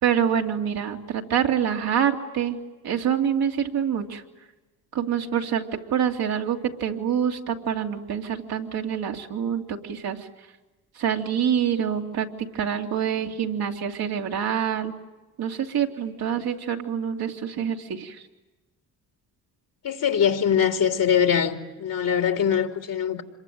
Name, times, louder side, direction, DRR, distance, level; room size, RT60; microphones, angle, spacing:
voice 1, 0.0-4.2 4.9-10.3 11.0-14.9 15.4-18.3, right 8 dB, 65° right, 2.7 m, -26 dB
voice 2, 19.8-23.2, left 8 dB, 55° left, 2.9 m, -22 dB
26.5 x 23.0 x 9.3 m
supercardioid pair, 55°, 39 cm